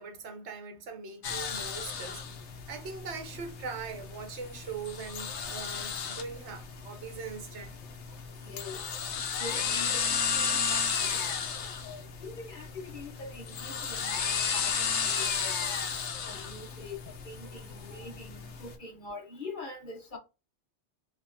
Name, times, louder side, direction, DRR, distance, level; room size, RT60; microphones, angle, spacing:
voice 1, 0.0-7.7 8.1-8.2 8.7-8.9 14.3-14.7 17.4-18.2, right 5 dB, 75° right, 1.1 m, -42 dB
sound 1, 1.2-18.7, left 6 dB, 80° left, 1.0 m, -34 dB
voice 2, 8.4-8.9 9.4-11.4 11.8-15.8 16.2-20.2, left 3 dB, 50° left, 1.0 m, -44 dB
2.9 x 2.7 x 3.5 m
omnidirectional pair, 1.2 m